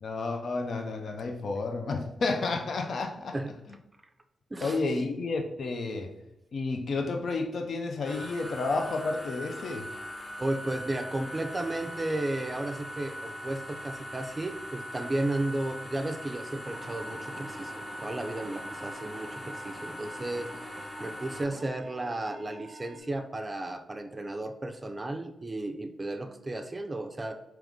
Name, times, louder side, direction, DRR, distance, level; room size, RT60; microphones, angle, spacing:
voice 1, 0.0-3.3 4.6-6.1 6.5-9.9, left 3 dB, 65° left, 4 dB, 0.5 m, -31 dB
voice 2, 4.5-4.8 10.4-17.7 18.0-27.3, right 2 dB, 30° right, 7 dB, 0.4 m, -34 dB
sound 1, 8.0-21.4, equal, 25° left, 1.0 m, -41 dB
sound 2, 16.7-23.0, right 1 dB, 10° right, 1.2 m, -46 dB
3.5 x 2.9 x 3.6 m, 0.92 s
supercardioid pair, 45°, 0 cm